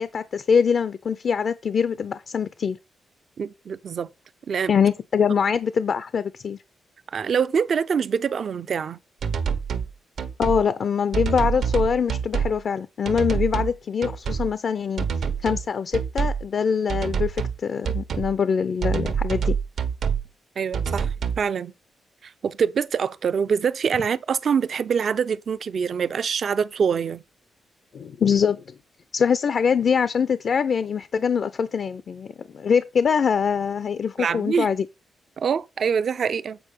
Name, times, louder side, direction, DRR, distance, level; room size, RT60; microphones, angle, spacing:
voice 1, 0.0-2.8 4.7-6.6 10.4-19.6 27.9-28.7 29.1-34.9, left 6 dB, 50° left, 0.5 m, -23 dB
voice 2, 3.4-4.1 4.5-4.7 7.1-9.0 20.6-21.7 22.2-27.2 34.2-34.7 35.4-36.6, right 6 dB, 55° right, 0.6 m, -25 dB
sound 1, 9.2-9.9 10.2-10.6 11.1-12.6 13.1-13.7 14.0-14.5 15.0-15.7 15.9-16.4 16.9-17.6 17.8-18.3 18.8-20.2 20.7-21.4, right 6 dB, 75° right, 1.3 m, -26 dB
8.5 x 4.8 x 5.2 m
cardioid pair, 120°, 0 cm